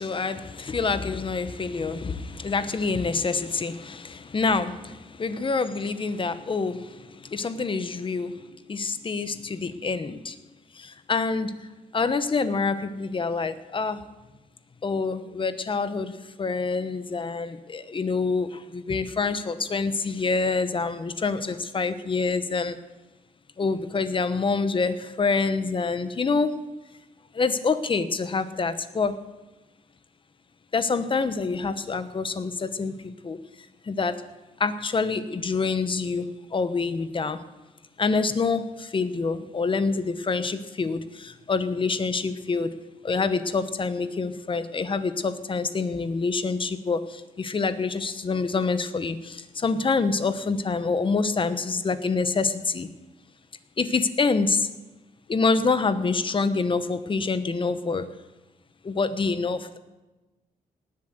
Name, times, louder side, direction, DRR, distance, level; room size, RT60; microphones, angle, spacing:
voice 1, 0.0-10.4 10.7-11.7 11.9-14.0 14.8-22.8 23.6-26.6 27.3-29.2 30.7-33.4 33.8-34.2 34.6-37.4 38.0-42.7 43.0-52.9 53.8-54.7 55.3-58.1 58.8-59.8, left 4 dB, 35° left, 12 dB, 1.0 m, -26 dB
18.5 x 7.6 x 7.8 m, 1.1 s
cardioid pair, 110°, 15 cm